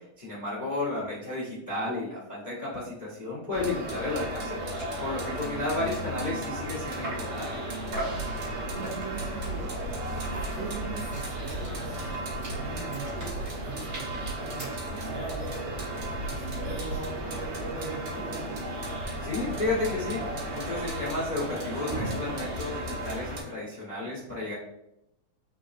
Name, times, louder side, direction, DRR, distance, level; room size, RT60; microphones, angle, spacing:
voice 1, 0.0-7.6 19.2-24.5, left 2 dB, 70° left, -8 dB, 0.4 m, -33 dB
sound 1, 3.5-23.4, right 1 dB, 60° right, 1.7 m, -35 dB
sound 2, 4.1-4.2 4.4-4.5 4.7-5.0 5.4-7.4 7.9-8.3 8.8-9.3 9.8-15.2, right 1 dB, 40° right, 1.7 m, -42 dB
voice 2, 7.7-8.5 8.7-9.7 10.3-12.1 12.5-18.4, right 4 dB, 80° right, -3 dB, 1.6 m, -42 dB
Camera, 7.9-22.7, right 2 dB, 85° left, 1.6 m, -40 dB
4.6 x 3.8 x 2.5 m, 0.84 s
omnidirectional pair, 3.9 m